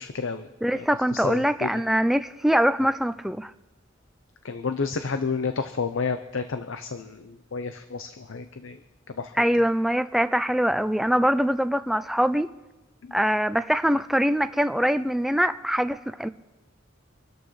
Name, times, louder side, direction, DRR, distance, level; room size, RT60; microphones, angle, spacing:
voice 1, 0.0-0.5 0.7-0.9 1.1-1.8 4.4-8.8 9.2-9.3 13.0-13.2, left 4 dB, 85° left, 8 dB, 0.7 m, -31 dB
voice 2, 0.6-3.5 9.4-12.5 13.1-16.3, equal, ahead, 11 dB, 0.4 m, -23 dB
26.0 x 13.0 x 3.2 m, 1.1 s
head